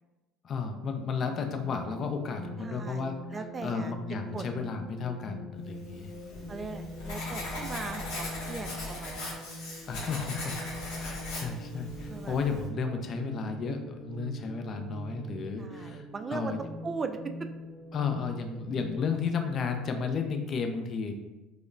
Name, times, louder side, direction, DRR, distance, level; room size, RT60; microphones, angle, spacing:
voice 1, 0.4-6.1 9.9-10.5 10.8-16.0 16.3-16.6 17.9-21.1, left 5 dB, 45° left, 5 dB, 0.4 m, -33 dB
sound 1, 0.7-19.9, equal, 5° left, 0.8 m, -43 dB
voice 2, 2.6-3.9 4.3-4.7 6.5-9.4 12.1-12.7 15.6-17.5, right 4 dB, 30° right, 7 dB, 0.3 m, -39 dB
Writing, 5.9-12.7, left 1 dB, 70° left, 1.0 m, -39 dB
4.8 x 2.1 x 2.5 m, 1.1 s
hypercardioid pair, 70°, 0 cm